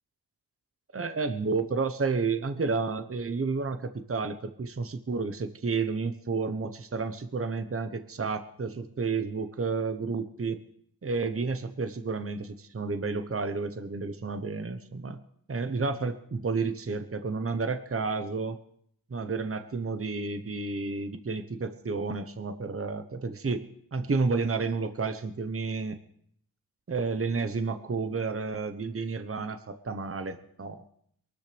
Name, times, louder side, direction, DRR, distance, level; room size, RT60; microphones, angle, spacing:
voice 1, 0.9-10.6 11.0-15.2 15.5-18.6 19.1-23.7 23.9-26.0 26.9-30.8, right 4 dB, 35° right, 9 dB, 1.1 m, -31 dB
23.0 x 13.0 x 3.5 m, 0.67 s
cardioid pair, 40°, 39 cm